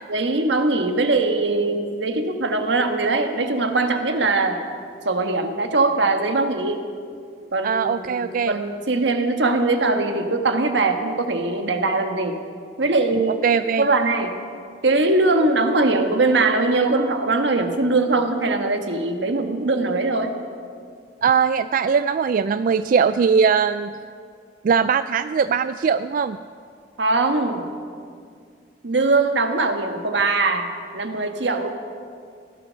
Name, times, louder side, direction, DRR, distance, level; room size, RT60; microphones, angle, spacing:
voice 1, 0.1-4.6 5.0-6.8 7.5-12.4 12.8-13.4 13.8-14.3 14.8-20.4 27.0-27.7 28.8-31.7, right 3 dB, 80° right, 6 dB, 1.4 m, -21 dB
voice 2, 7.6-8.5 13.4-13.9 21.2-23.9 24.6-26.4, right 6 dB, 50° right, 12 dB, 0.3 m, -20 dB
16.5 x 12.0 x 6.4 m, 2.2 s
head